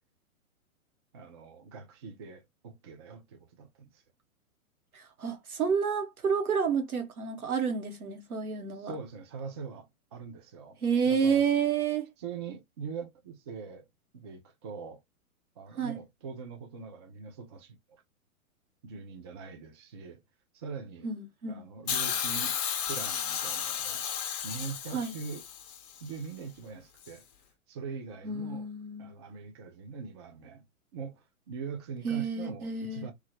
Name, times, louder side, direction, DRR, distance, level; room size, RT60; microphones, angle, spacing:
voice 1, 1.1-4.0 8.8-11.4 12.2-13.9 14.1-15.0 15.6-18.0 18.8-20.2 20.5-21.1 21.5-22.5 22.9-24.1 24.4-25.4 26.0-27.2 27.7-28.7 29.0-30.7 30.9-33.1, right 5 dB, 20° right, 0.3 m, -42 dB
voice 2, 4.9-8.9 10.8-12.1 15.8-16.0 21.0-21.6 24.9-25.1 28.2-29.1 32.0-33.1, right 6 dB, 85° right, 1.1 m, -29 dB
Hiss, 21.9-26.0 27.0-27.1, left 8 dB, 30° left, 0.7 m, -33 dB
2.9 x 2.4 x 2.9 m
figure-of-eight pair, 115°, 43 cm